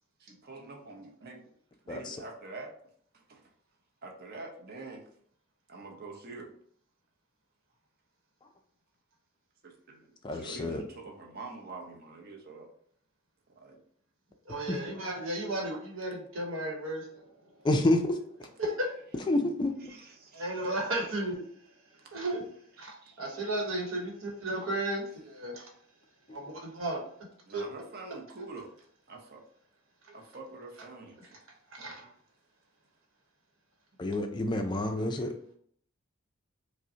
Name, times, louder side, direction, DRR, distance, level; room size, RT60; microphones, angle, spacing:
voice 1, 0.2-1.4 1.8-2.8 3.1-3.5 4.0-5.1 5.7-6.5 9.6-10.0 10.3-12.7 13.5-13.8 15.7-15.8 19.4-19.5 19.9-20.5 22.8-23.3 27.5-28.7 29.1-29.4 30.1-31.4 31.8-32.0 35.0-35.3, right 3 dB, 50° right, 1 dB, 0.7 m, -46 dB
voice 2, 10.2-10.8 14.7-14.8 17.6-18.2 19.3-19.7 26.3-26.4 34.0-35.3, left 1 dB, 20° left, 5 dB, 0.3 m, -28 dB
voice 3, 14.5-17.3 18.6-18.9 20.3-21.5 22.1-22.4 22.8-25.7 26.3-27.0 27.5-27.7 31.7-32.1, right 1 dB, 85° right, 1 dB, 1.0 m, -34 dB
5.0 x 2.1 x 2.7 m, 0.62 s
head